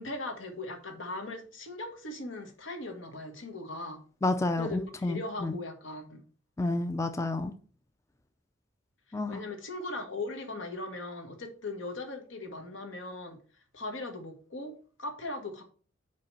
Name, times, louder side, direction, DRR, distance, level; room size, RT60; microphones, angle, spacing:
voice 1, 0.0-4.0 4.6-6.2 9.3-13.4 13.7-15.6, left 2 dB, 80° left, 1.5 m, -39 dB
voice 2, 4.2-5.5 6.6-7.5 9.1-9.4, left 2 dB, 15° left, 0.4 m, -30 dB
5.4 x 4.8 x 5.4 m
head